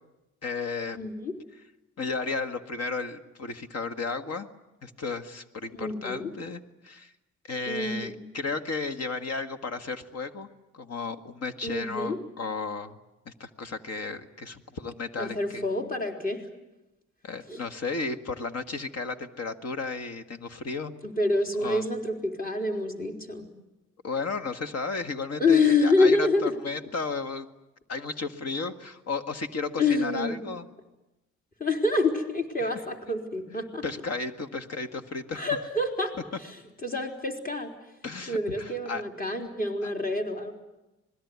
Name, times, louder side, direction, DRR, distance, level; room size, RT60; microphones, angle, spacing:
voice 1, 0.4-1.0 2.0-4.5 4.8-7.1 7.4-10.5 10.7-13.0 13.3-15.6 17.2-20.9 21.6-21.8 24.0-27.5 27.9-30.7 32.6-32.7 33.8-35.5 38.0-39.0 39.8-39.9, left 4 dB, 55° left, 8 dB, 1.9 m, -34 dB
voice 2, 0.9-1.4 5.7-6.3 7.7-8.2 11.6-12.2 15.2-16.4 17.5-17.6 21.0-23.5 25.4-26.5 29.8-30.4 31.6-33.8 35.3-36.1 36.4-36.6 36.8-37.7 38.3-40.5, left 3 dB, 30° left, 3 dB, 4.2 m, -27 dB
26.5 x 20.5 x 9.7 m, 0.99 s
cardioid pair, 90°, 30 cm